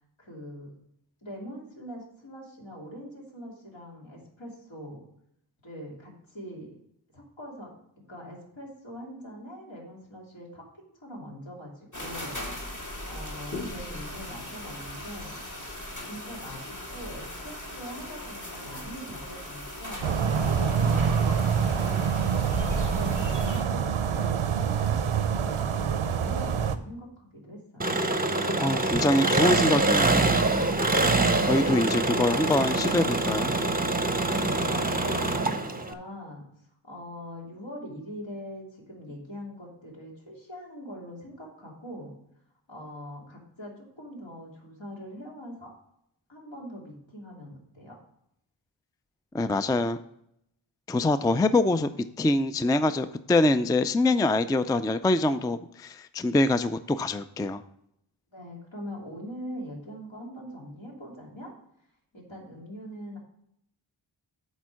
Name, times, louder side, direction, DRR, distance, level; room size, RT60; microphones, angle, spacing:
voice 1, 0.2-0.7 1.2-5.1 5.6-6.7 7.1-12.4 13.0-15.4 16.0-22.2 22.9-27.9 31.7-32.1 34.2-36.5 36.8-42.1 42.7-45.7 46.3-48.0 58.3-61.5 62.1-63.2, equal, 70° left, -3 dB, 2.9 m, -42 dB
sound 1, 11.9-23.6, left 1 dB, 40° left, 1.9 m, -38 dB
sound 2, 20.0-26.8, right 7 dB, 90° right, 0.6 m, -26 dB
Engine, 27.8-35.9, right 2 dB, 20° right, 0.7 m, -25 dB
voice 2, 28.6-30.3 31.4-33.6 49.3-50.0 50.9-51.9 52.2-57.6, left 2 dB, 10° left, 12 dB, 0.3 m, -24 dB
8.2 x 4.4 x 6.2 m, 0.75 s
wide cardioid pair, 50°, 47 cm